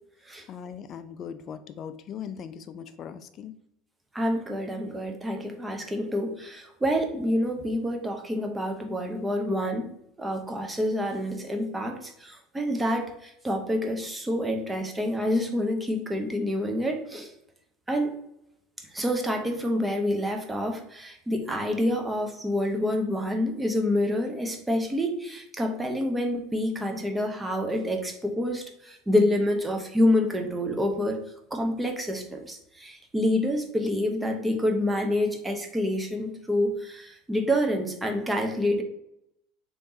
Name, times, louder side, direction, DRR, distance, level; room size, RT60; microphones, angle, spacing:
voice 1, 0.5-3.6, left 7 dB, 45° left, 11 dB, 0.3 m, -39 dB
voice 2, 4.1-9.9 10.2-17.3 17.9-18.1 18.9-31.2 31.5-38.8, left 1 dB, 10° right, 3 dB, 0.7 m, -27 dB
3.4 x 3.0 x 2.7 m, 0.78 s
hypercardioid pair, 75°, 0 cm